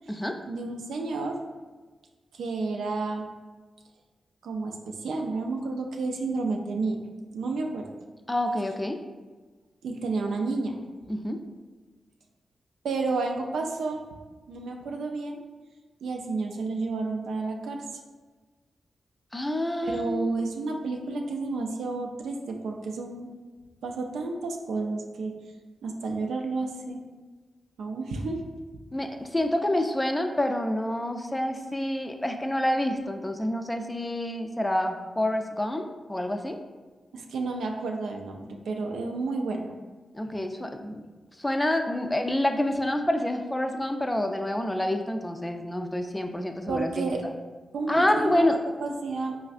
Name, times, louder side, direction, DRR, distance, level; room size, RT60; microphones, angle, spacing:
voice 1, 0.5-1.4 2.3-3.3 4.4-7.0 7.3-7.9 9.8-10.8 12.8-14.0 14.5-15.4 16.0-17.8 19.8-23.3 23.8-25.3 25.8-27.0 27.8-28.5 37.1-39.6 46.7-47.2 47.7-48.4 48.8-49.4, right 3 dB, 85° right, 2 dB, 0.3 m, -31 dB
voice 2, 8.3-9.0 11.1-11.4 19.3-20.3 28.9-36.6 40.1-41.0 41.4-47.3 47.9-48.6, left 1 dB, 15° left, 5 dB, 0.4 m, -27 dB
4.1 x 2.3 x 2.4 m, 1.3 s
supercardioid pair, 45°, 0 cm